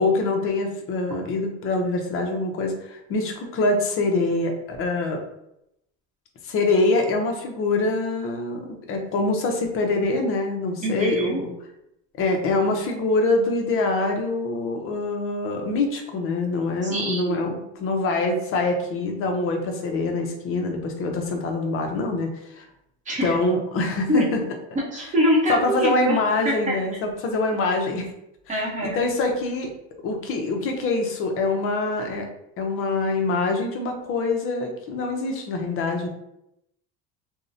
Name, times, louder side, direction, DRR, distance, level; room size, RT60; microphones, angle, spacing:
voice 1, 0.0-5.2 6.4-11.5 12.2-22.6 23.2-24.4 25.5-28.1 28.5-28.6 28.8-29.7 30.0-32.3 32.6-36.1, left 3 dB, 40° left, 3 dB, 0.5 m, -24 dB
voice 2, 10.8-11.4 16.8-17.4 23.1-23.3 24.1-24.3 24.9-26.2 26.4-26.7 28.5-29.0, equal, 20° right, -3 dB, 0.7 m, -24 dB
2.6 x 2.0 x 2.5 m, 0.81 s
cardioid pair, 135°, 34 cm